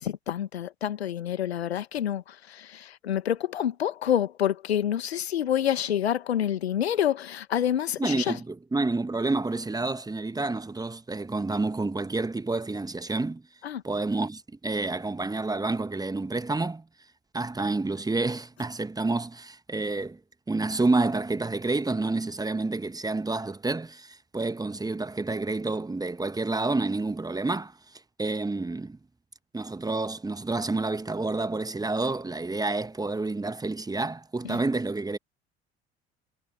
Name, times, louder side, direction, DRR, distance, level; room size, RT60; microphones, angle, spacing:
voice 1, 0.0-8.4 13.6-13.8 34.4-34.6, left 10 dB, 75° left, 1.5 m, -28 dB
voice 2, 8.0-13.4 13.8-16.8 17.3-20.2 20.5-27.7 28.2-29.0 29.5-35.2, right 3 dB, 10° right, 1.3 m, -29 dB
figure-of-eight pair, 60°, 32 cm